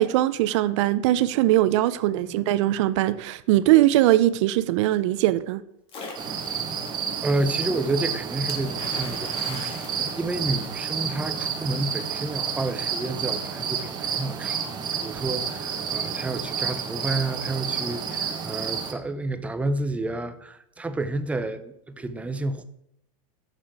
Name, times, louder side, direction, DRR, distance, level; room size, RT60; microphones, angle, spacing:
voice 1, 0.0-5.6, right 14 dB, 65° right, 0.5 m, -21 dB
Splash splatter, 5.9-6.8 8.5-10.9, left 3 dB, 35° left, 1.8 m, -40 dB
sound 1, 6.2-18.9, right 7 dB, 25° right, 1.1 m, -30 dB
voice 2, 7.2-22.6, right 2 dB, 10° right, 0.5 m, -30 dB
7.3 x 6.7 x 4.7 m
supercardioid pair, 140°, 17 cm